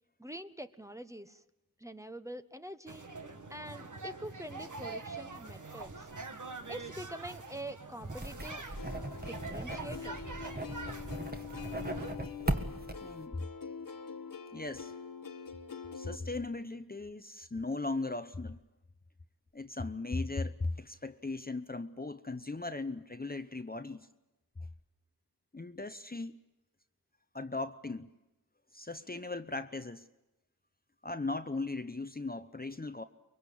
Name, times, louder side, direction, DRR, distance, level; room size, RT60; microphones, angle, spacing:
voice 1, 0.2-1.4 1.8-3.1 3.5-6.1 6.7-8.6 9.2-10.2, right 1 dB, 10° right, 10 dB, 1.1 m, -45 dB
sound 1, 2.9-12.1, right 3 dB, 60° right, 1.8 m, -45 dB
sound 2, 8.0-13.2, right 1 dB, 25° right, 1.6 m, -38 dB
Plucked string instrument, 8.8-16.2, left 6 dB, 70° left, 1.2 m, -44 dB
voice 2, 13.0-13.5 14.5-14.9 15.9-18.6 19.5-24.1 25.5-26.4 27.3-28.1 28.7-30.1 31.0-33.0, left 3 dB, 25° left, 10 dB, 0.8 m, -38 dB
24.0 x 23.0 x 8.6 m, 0.97 s
wide cardioid pair, 50°, 35 cm